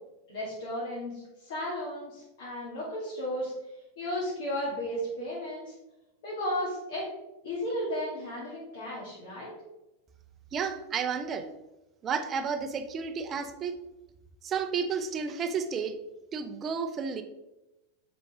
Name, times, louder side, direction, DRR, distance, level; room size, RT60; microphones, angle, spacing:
voice 1, 0.3-3.5 4.0-5.7 6.2-7.1 7.4-9.5, equal, 55° left, -7 dB, 2.5 m, -34 dB
voice 2, 10.5-11.5 12.0-13.8 14.4-16.0 16.3-17.2, right 6 dB, 25° right, 8 dB, 0.6 m, -31 dB
7.5 x 5.1 x 3.5 m, 0.97 s
figure-of-eight pair, 90°, 0 cm